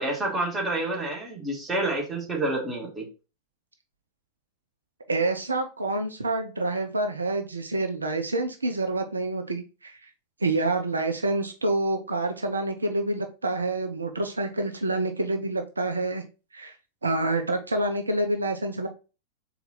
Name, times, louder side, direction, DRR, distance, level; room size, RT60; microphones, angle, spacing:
voice 1, 0.0-3.1, right 2 dB, 15° right, -1 dB, 1.8 m, -28 dB
voice 2, 5.1-10.1 10.4-16.2 16.5-16.8 17.0-18.9, right 2 dB, 75° right, 6 dB, 0.5 m, -27 dB
3.9 x 2.9 x 4.0 m, 0.32 s
figure-of-eight pair, 90°, 0 cm